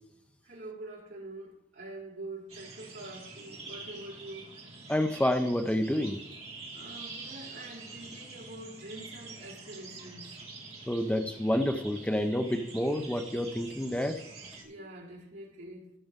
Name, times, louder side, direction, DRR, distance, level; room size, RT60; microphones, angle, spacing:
voice 1, 0.4-4.6 6.7-10.4 14.6-15.9, right 2 dB, 65° right, 4.2 m, -45 dB
sound 1, 2.5-14.6, right 3 dB, 30° right, 2.8 m, -46 dB
voice 2, 4.9-6.2 10.9-14.2, left 1 dB, 5° left, 0.7 m, -28 dB
16.5 x 6.9 x 3.7 m
head